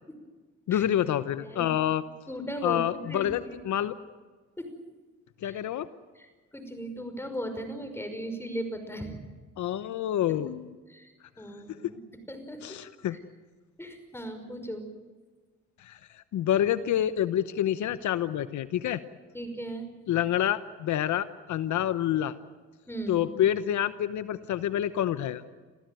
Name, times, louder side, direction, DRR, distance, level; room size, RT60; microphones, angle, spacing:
voice 1, 0.7-2.0 2.6-3.9 5.4-5.9 9.6-10.7 12.6-13.2 15.8-16.0 16.3-19.0 20.1-22.3 23.1-25.4, left 11 dB, 70° left, 13 dB, 1.0 m, -27 dB
voice 2, 1.4-1.7 2.3-3.6 4.6-4.7 5.4-5.6 6.1-9.2 10.9-12.0 12.3-12.6 13.1-13.2 13.8-14.9 19.3-19.9 22.9-23.2, right 1 dB, 10° left, 7 dB, 5.5 m, -37 dB
28.0 x 15.0 x 9.2 m, 1.4 s
cardioid pair, 90°, 30 cm